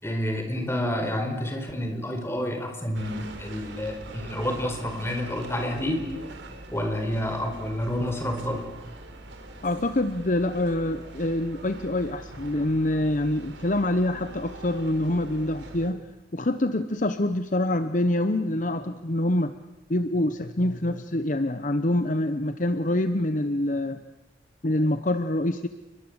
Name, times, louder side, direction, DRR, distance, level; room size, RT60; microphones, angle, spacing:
voice 1, 0.0-6.0 6.7-8.7, left 1 dB, 15° left, 4 dB, 4.6 m, -29 dB
sound 1, 2.9-15.9, right 2 dB, 85° right, 4.0 m, -43 dB
voice 2, 9.6-16.0 16.3-19.5 19.9-24.0 24.6-25.7, left 1 dB, 45° left, 10 dB, 1.0 m, -25 dB
30.0 x 22.0 x 8.0 m, 1.0 s
head